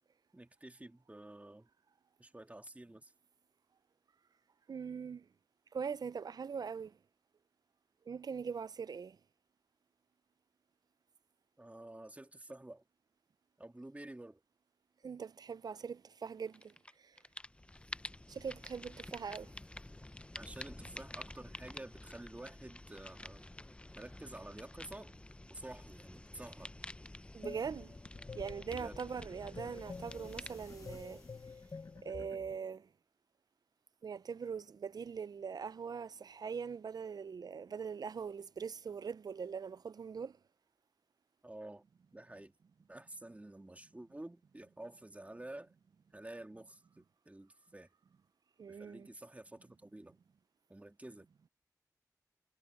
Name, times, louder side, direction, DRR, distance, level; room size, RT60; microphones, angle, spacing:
voice 1, 0.3-1.7 2.2-3.1 11.6-12.8 13.6-14.4 20.4-23.5 23.9-25.1 25.5-26.7 28.7-29.0 41.4-41.8 42.1-42.5 42.9-45.7 46.1-47.9 48.6-50.2 50.7-51.3, right 1 dB, 20° right, 2.3 m, -50 dB
voice 2, 4.7-5.3 5.7-7.0 8.1-9.2 15.0-17.2 18.3-19.6 27.3-27.9 28.3-31.3 32.0-32.9 34.0-40.4 48.6-49.1, right 6 dB, 80° right, 0.4 m, -42 dB
sound 1, 16.5-16.9 17.2-32.2, left 1 dB, 15° left, 0.5 m, -50 dB
sound 2, 27.4-32.6, left 4 dB, 55° left, 0.7 m, -49 dB
wide cardioid pair, 90°, 7 cm